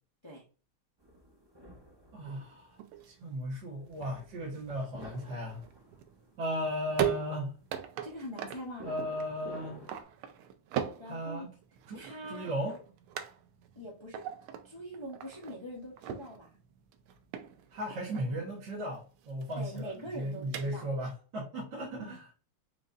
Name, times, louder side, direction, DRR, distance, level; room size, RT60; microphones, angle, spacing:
sound 1, 1.0-10.0, right 1 dB, 35° right, 0.4 m, -52 dB
voice 1, 2.1-2.8 3.0-5.6 6.4-7.5 8.8-9.8 11.0-11.5 11.9-12.8 17.7-22.3, equal, 60° right, -5 dB, 1.8 m, -36 dB
sound 2, 2.3-21.1, right 10 dB, 85° right, 1.5 m, -41 dB
voice 2, 8.0-8.9 11.0-11.5 11.9-12.5 13.7-14.2 14.6-16.5 19.5-20.9 22.0-22.2, equal, 25° left, -4 dB, 0.6 m, -43 dB
5.2 x 2.9 x 2.5 m, 0.37 s
omnidirectional pair, 2.3 m